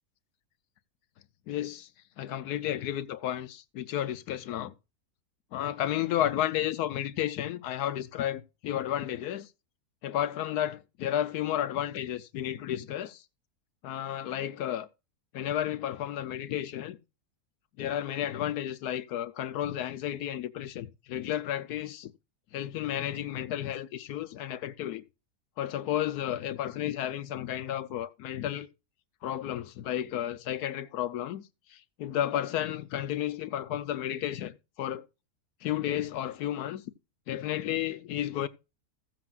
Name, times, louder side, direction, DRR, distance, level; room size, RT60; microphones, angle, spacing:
voice 1, 1.5-1.9 2.2-4.7 5.5-9.5 10.0-13.2 13.8-14.9 15.3-17.0 17.8-22.1 22.5-25.0 25.6-28.7 29.2-31.4 31.7-35.1 35.6-36.8 37.3-38.5, left 11 dB, 80° left, 1.2 m, -32 dB
15.5 x 7.7 x 2.3 m
omnidirectional pair, 1.6 m